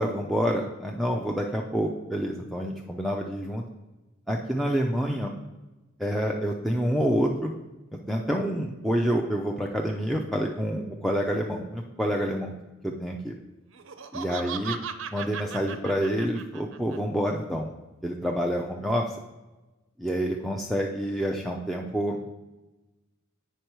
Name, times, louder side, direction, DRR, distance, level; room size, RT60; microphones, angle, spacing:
voice 1, 0.0-3.6 4.3-5.3 6.0-7.5 7.9-12.5 12.8-13.3 14.1-14.8 15.1-17.7 18.0-19.0 20.0-22.2, equal, ahead, -1 dB, 0.5 m, -28 dB
Laughter, 13.7-17.0, right 7 dB, 70° right, 0.6 m, -37 dB
8.1 x 5.4 x 4.5 m, 1.1 s
head